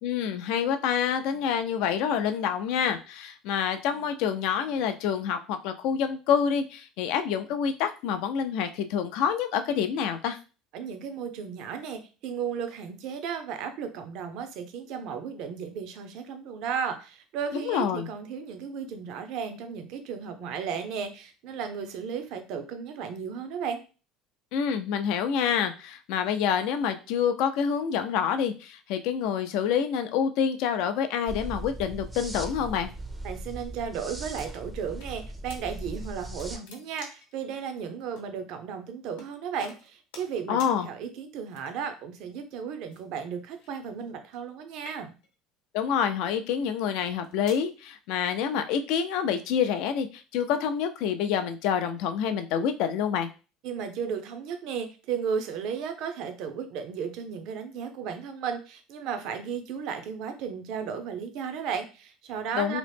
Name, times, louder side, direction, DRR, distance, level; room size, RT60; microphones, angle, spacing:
voice 1, 0.0-10.4 17.5-18.1 24.5-32.9 40.5-40.9 45.7-53.3 62.5-62.8, left 7 dB, 70° left, 9 dB, 0.4 m, -27 dB
voice 2, 10.7-23.8 33.2-45.1 53.6-62.8, right 7 dB, 65° right, 7 dB, 0.5 m, -34 dB
sound 1, 31.3-36.6, right 1 dB, 15° right, 0.4 m, -38 dB
sound 2, 34.4-35.1 35.5-35.6 36.0-37.3 38.2-38.3 39.2-39.3 39.6-40.3 40.6-40.7 41.5-41.9 42.9-44.5 44.8-45.3 46.0-46.3 47.0-47.7, left 3 dB, 85° left, 0.8 m, -48 dB
2.9 x 2.0 x 3.3 m, 0.34 s
supercardioid pair, 110°, 0 cm